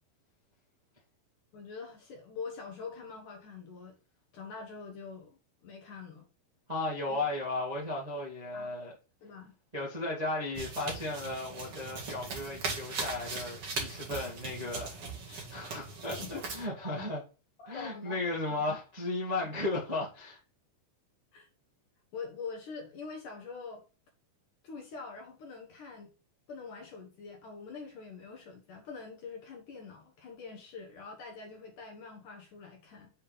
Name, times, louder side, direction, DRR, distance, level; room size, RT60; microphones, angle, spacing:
voice 1, 1.5-4.0 4.3-6.3 7.1-7.2 8.5-8.7 9.2-9.5 16.2-16.5 16.8-17.2 17.6-18.2 18.5-18.7 21.3-21.5 22.1-23.8 24.6-26.1 26.5-33.1, left 5 dB, 60° left, 2.4 m, -44 dB
voice 2, 6.7-8.9 9.7-15.0 15.3-17.2 17.7-20.4, left 2 dB, 20° right, 1.0 m, -35 dB
sound 1, 10.5-16.7, right 4 dB, 45° right, 2.2 m, -39 dB
8.5 x 3.8 x 5.1 m
omnidirectional pair, 4.9 m